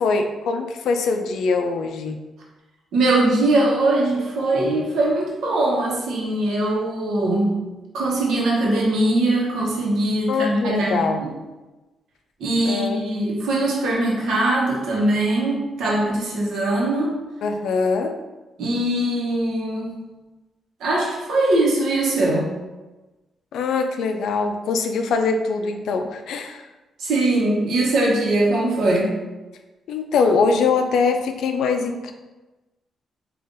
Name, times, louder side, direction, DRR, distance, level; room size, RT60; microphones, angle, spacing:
voice 1, 0.0-2.2 10.3-11.2 12.6-13.1 17.4-18.1 23.5-26.7 29.9-32.1, left 4 dB, 80° left, 6 dB, 0.3 m, -22 dB
voice 2, 2.9-7.6 7.9-11.3 12.4-17.2 18.6-20.0 20.8-22.5 27.0-29.2, right 2 dB, 75° right, -4 dB, 0.9 m, -21 dB
5.3 x 2.4 x 2.5 m, 1.1 s
wide cardioid pair, 160°, 0 cm